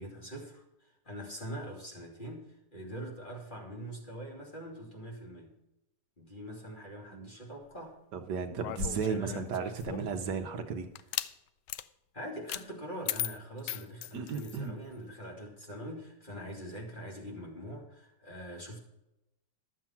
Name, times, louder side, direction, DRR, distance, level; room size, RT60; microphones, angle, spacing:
voice 1, 0.0-5.5 6.2-8.0 9.0-9.5 12.1-18.8, equal, 25° left, -1 dB, 2.8 m, -43 dB
voice 2, 8.1-10.9 14.1-14.8, right 6 dB, 70° right, 6 dB, 1.5 m, -34 dB
sound 1, 8.6-10.2 10.9-11.3 11.7-11.9 12.5-12.6 13.1-14.6, left 11 dB, 75° left, 1.1 m, -37 dB
12.0 x 7.4 x 5.8 m, 0.90 s
omnidirectional pair, 2.0 m